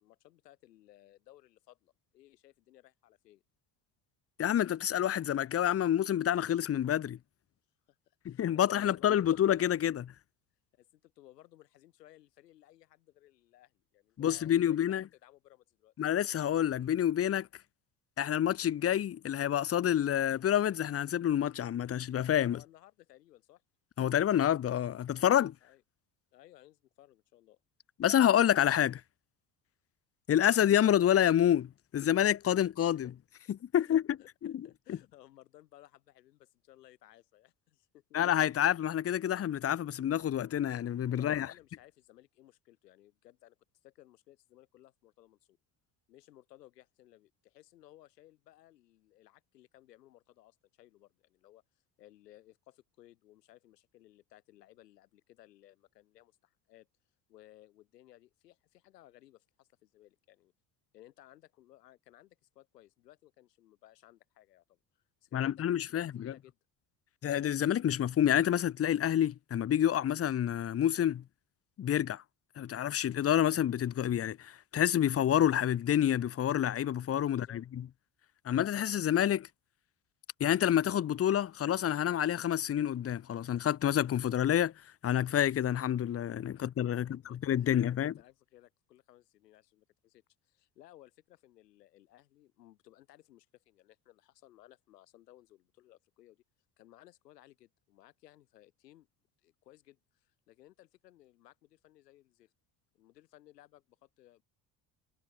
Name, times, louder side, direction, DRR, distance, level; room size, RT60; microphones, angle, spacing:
voice 1, 0.0-3.4 7.9-9.3 10.7-15.9 22.5-23.6 25.6-25.8 26.3-27.6 32.9-33.0 33.7-38.2 41.1-43.6 43.8-45.6 46.1-51.6 52.0-56.9 57.3-60.5 60.9-66.6 77.2-77.7 86.5-96.4 96.8-99.1 99.4-102.5 102.9-104.4, left 14 dB, 90° left, 4.4 m, -60 dB
voice 2, 4.4-7.2 8.2-10.1 14.2-15.0 16.0-17.5 18.2-22.6 24.0-25.5 28.0-29.0 30.3-33.1 33.5-34.0 34.4-34.5 34.9-35.0 38.1-41.5 65.3-66.3 67.2-71.2 71.8-72.2 72.6-77.8 78.4-79.5 80.4-84.7 85.0-88.1, left 10 dB, 30° left, 0.8 m, -28 dB
hypercardioid pair, 70°, 47 cm